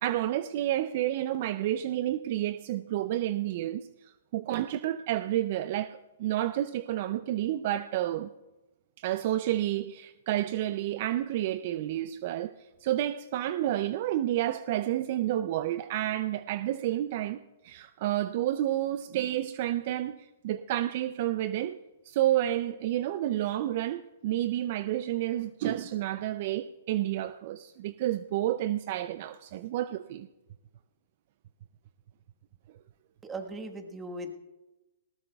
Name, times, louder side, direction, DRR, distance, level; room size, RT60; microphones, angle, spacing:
voice 1, 0.0-3.9 4.3-8.3 9.0-12.5 12.8-20.2 20.4-21.8 22.1-30.3, right 13 dB, 50° right, 13 dB, 0.4 m, -30 dB
voice 2, 33.2-34.3, right 2 dB, 15° right, 5 dB, 1.4 m, -38 dB
19.5 x 18.0 x 2.3 m, 1.1 s
hypercardioid pair, 135°, 0 cm